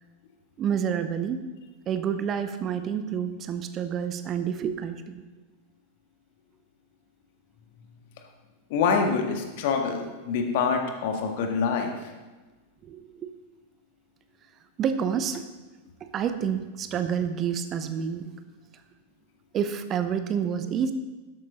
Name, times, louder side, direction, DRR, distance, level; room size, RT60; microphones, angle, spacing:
voice 1, 0.6-1.4 1.9-5.2 12.8-13.3 14.8-15.5 16.0-18.3 19.5-20.9, right 8 dB, 30° right, 9 dB, 0.8 m, -28 dB
voice 2, 8.7-11.9, left 5 dB, 50° left, 3 dB, 1.8 m, -25 dB
12.5 x 11.5 x 4.0 m, 1.2 s
figure-of-eight pair, 90°, 0 cm